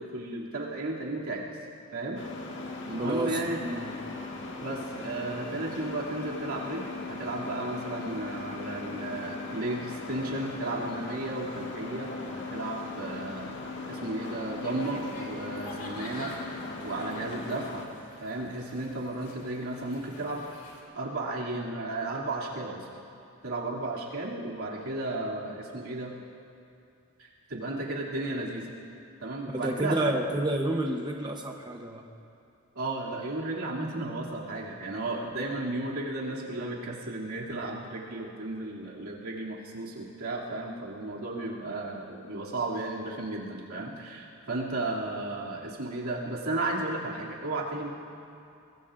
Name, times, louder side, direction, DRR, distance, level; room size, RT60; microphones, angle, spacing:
voice 1, 0.0-1.4 1.9-2.2 2.9-3.6 4.6-13.5 13.9-16.3 16.8-17.8 18.2-20.4 20.9-22.9 23.4-26.1 27.2-28.7 29.2-30.1 32.7-47.9, right 2 dB, 90° right, -4 dB, 2.6 m, -34 dB
sound 1, 2.2-17.9, left 3 dB, 60° left, 1.7 m, -38 dB
voice 2, 3.0-3.9 29.5-32.0, right 1 dB, 20° right, 2 dB, 0.8 m, -30 dB
sound 2, 14.6-20.8, left 1 dB, 40° left, 2.6 m, -47 dB
24.0 x 20.5 x 2.5 m, 2.6 s
head